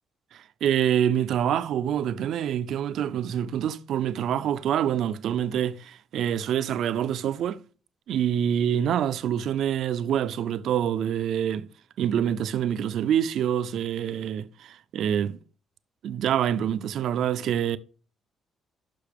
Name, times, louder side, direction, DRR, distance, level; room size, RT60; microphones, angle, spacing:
voice 1, 0.3-7.6 8.1-11.7 12.0-15.4 16.0-17.8, right 9 dB, 75° right, 0.4 m, -26 dB
6.7 x 5.9 x 3.4 m
cardioid pair, 90°, 0 cm